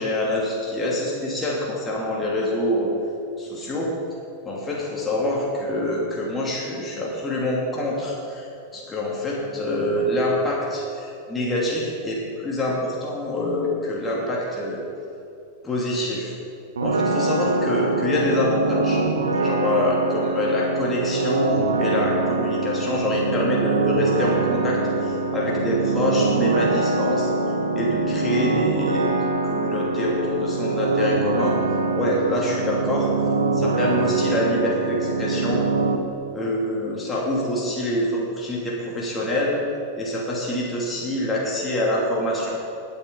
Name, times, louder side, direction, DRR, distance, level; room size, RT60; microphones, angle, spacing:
voice 1, 0.0-2.9 3.4-3.9 4.4-8.5 8.7-14.8 15.6-16.3 16.8-19.0 19.4-27.3 27.7-31.5 31.9-33.1 33.5-35.6 36.3-39.6 40.0-42.6, left 1 dB, 15° left, -4 dB, 2.7 m, -25 dB
sound 1, 16.8-36.0, right 3 dB, 70° right, 0.9 m, -24 dB
21.5 x 8.6 x 4.1 m, 2.6 s
figure-of-eight pair, 90°, 0 cm